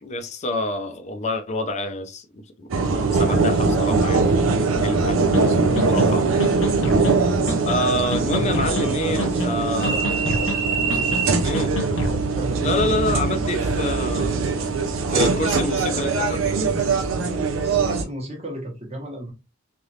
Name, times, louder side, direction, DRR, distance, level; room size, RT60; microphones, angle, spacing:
voice 1, 0.0-2.7 3.1-5.3 5.5-6.2 7.6-10.1 11.4-11.8 12.6-14.5 15.1-16.4, left 1 dB, 35° left, 0.5 m, -27 dB
sound 1, 2.7-18.0, right 4 dB, 75° right, 0.5 m, -21 dB
sound 2, 5.3-5.4 5.8-6.1 6.4-7.2 7.5-7.8 8.1-8.9 9.2-9.6 9.8-10.6 10.9-11.2 11.5-12.2, left 1 dB, 70° left, 0.7 m, -28 dB
voice 2, 9.1-10.0 10.8-11.2 12.3-12.7 17.6-19.3, right 1 dB, 30° right, 1.1 m, -34 dB
3.3 x 2.5 x 2.7 m
head